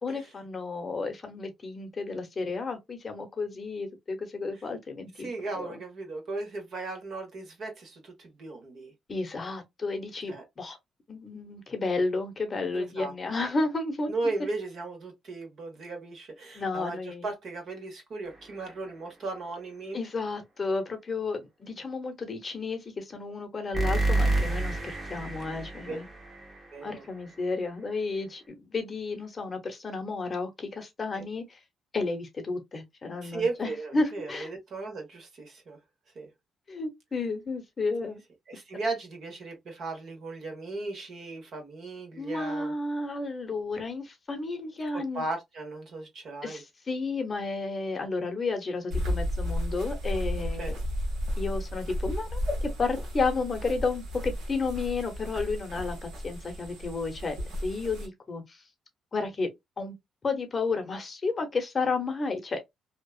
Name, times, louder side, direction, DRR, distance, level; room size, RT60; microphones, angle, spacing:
voice 1, 0.0-5.3 5.6-5.8 9.1-10.8 11.1-14.1 16.5-17.3 19.9-26.1 26.8-31.6 31.9-34.5 36.7-38.2 38.5-38.6 42.2-45.2 46.4-50.7 51.4-52.4 52.8-57.4 57.6-58.6 59.1-59.5 59.8-59.9 60.2-62.6, left 3 dB, 35° left, 0.9 m, -32 dB
voice 2, 5.2-8.9 10.3-10.4 12.7-13.1 14.1-20.0 25.8-26.0 26.7-27.0 31.1-31.2 33.2-35.8 36.1-36.3 38.5-42.7 44.9-46.6 50.6-50.7, right 3 dB, 60° right, 1.2 m, -36 dB
sound 1, 18.2-18.9 23.7-27.4, right 2 dB, 25° right, 1.1 m, -30 dB
sound 2, 48.9-58.1, equal, 80° right, 1.3 m, -33 dB
2.8 x 2.3 x 2.3 m
cardioid pair, 90°, 0 cm